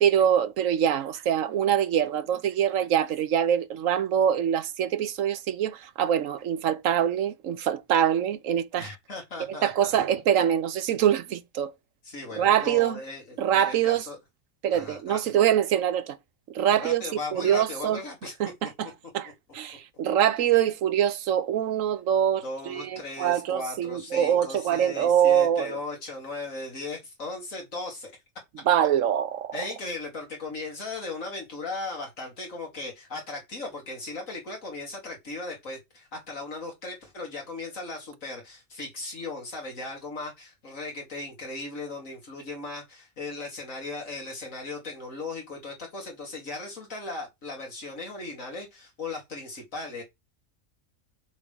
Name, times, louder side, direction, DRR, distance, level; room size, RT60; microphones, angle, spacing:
voice 1, 0.0-8.9 9.6-11.7 12.4-13.0 13.4-14.0 14.6-16.2 16.5-17.0 17.3-18.0 18.4-18.9 19.1-19.3 19.5-25.7 28.7-29.5, right 10 dB, 75° right, 1.1 m, -24 dB
voice 2, 8.8-10.0 12.0-14.2 14.7-15.2 16.8-18.3 18.6-18.7 19.2-19.3 22.4-28.1 29.5-50.0, left 3 dB, 75° left, 3.1 m, -37 dB
7.0 x 5.5 x 3.5 m
omnidirectional pair, 1.4 m